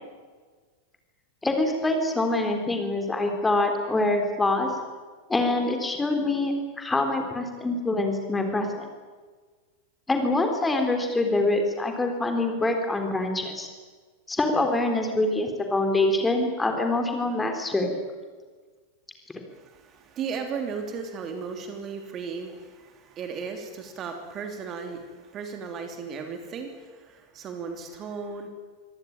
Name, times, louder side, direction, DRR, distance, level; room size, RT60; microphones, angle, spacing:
voice 1, 1.4-4.7 5.3-8.9 10.1-13.7 14.3-17.9, left 2 dB, 10° left, 4 dB, 3.9 m, -25 dB
voice 2, 19.5-28.5, right 5 dB, 30° right, 5 dB, 3.1 m, -36 dB
24.5 x 18.0 x 8.9 m, 1.5 s
figure-of-eight pair, 90°, 0 cm